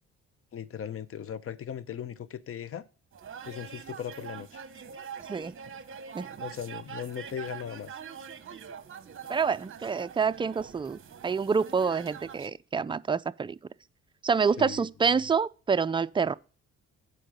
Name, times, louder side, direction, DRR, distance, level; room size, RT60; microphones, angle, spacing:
voice 1, 0.5-2.8 3.5-4.6 6.4-7.9 14.6-14.9, left 8 dB, 45° left, 0.8 m, -38 dB
sound 1, 3.1-12.5, right 7 dB, 40° right, 1.1 m, -44 dB
voice 2, 9.3-13.6 14.2-16.3, right 5 dB, 15° right, 0.4 m, -27 dB
8.4 x 4.7 x 6.5 m
cardioid pair, 90°, 30 cm